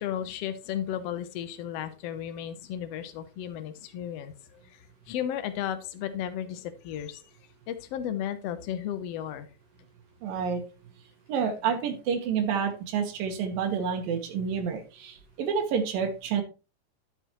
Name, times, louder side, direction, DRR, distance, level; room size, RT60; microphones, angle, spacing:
voice 1, 0.0-7.2 7.7-9.5, left 10 dB, 80° left, 10 dB, 1.4 m, -34 dB
voice 2, 10.2-10.6 11.3-16.4, right 6 dB, 90° right, 4 dB, 3.0 m, -29 dB
11.0 x 6.9 x 3.0 m, 0.31 s
omnidirectional pair, 3.9 m